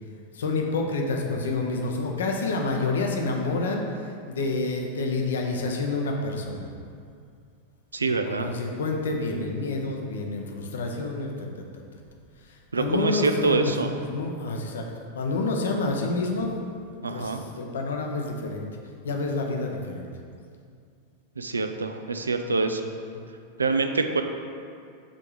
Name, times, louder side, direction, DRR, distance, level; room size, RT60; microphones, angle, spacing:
voice 1, 0.3-6.7 8.1-11.6 12.4-14.9 15.1-16.5 17.1-18.6 19.0-20.1 23.0-23.2, left 3 dB, 65° left, 1 dB, 0.8 m, -28 dB
voice 2, 7.9-8.5 12.7-13.9 17.0-17.4 21.4-22.8 23.6-24.2, right 3 dB, 75° right, 6 dB, 0.4 m, -25 dB
7.5 x 3.6 x 4.9 m, 2.3 s
figure-of-eight pair, 90°, 0 cm